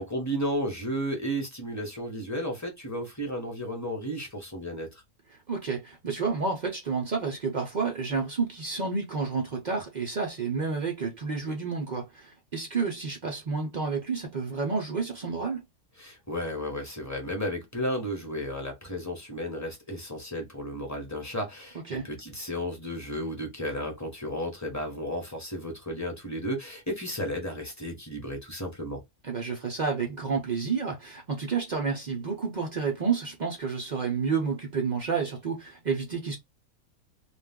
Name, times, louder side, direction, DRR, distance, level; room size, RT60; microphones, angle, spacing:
voice 1, 0.0-4.9 16.0-29.0, equal, 15° left, 0.8 m, -33 dB
voice 2, 5.3-15.6 21.9-22.1 29.2-36.4, right 5 dB, 85° right, 0.4 m, -30 dB
2.4 x 2.3 x 3.5 m
omnidirectional pair, 1.6 m